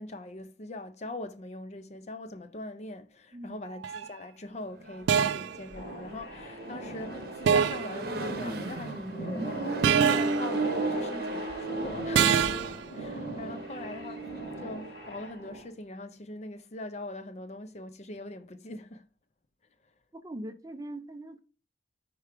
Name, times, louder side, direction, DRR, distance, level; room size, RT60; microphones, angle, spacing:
voice 1, 0.0-12.5 12.9-19.1, left 2 dB, 35° left, 0.5 m, -42 dB
sound 1, 3.8-4.1 5.1-5.6 7.5-8.0 9.8-10.5 12.1-12.7, right 7 dB, 80° right, 0.3 m, -24 dB
Accelerating revving vroom, 4.8-15.2, right 3 dB, 55° right, 0.8 m, -35 dB
sound 2, 5.8-15.7, right 1 dB, 85° left, 2.9 m, -40 dB
voice 2, 20.1-21.4, right 1 dB, 20° right, 0.5 m, -41 dB
4.6 x 4.6 x 4.9 m
head